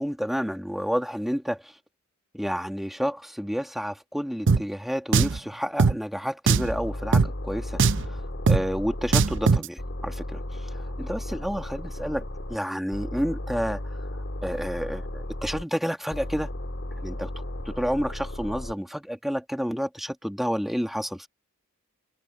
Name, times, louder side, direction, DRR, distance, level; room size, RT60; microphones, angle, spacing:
voice 1, 0.0-1.6 2.3-8.2 8.5-10.4 10.7-12.2 12.5-13.8 14.4-16.5 17.0-17.3 17.7-21.3, equal, ahead, 1.9 m, -30 dB
Drum, 4.5-4.6 5.1-5.4 5.8-5.9 6.5-6.7 7.1-7.3 7.8-8.1 8.5-8.6 9.1-9.7, right 4 dB, 55° right, 0.7 m, -19 dB
sound 1, 6.6-9.5 9.8-12.6 12.9-15.6 16.1-18.7, left 1 dB, 55° left, 1.8 m, -35 dB
head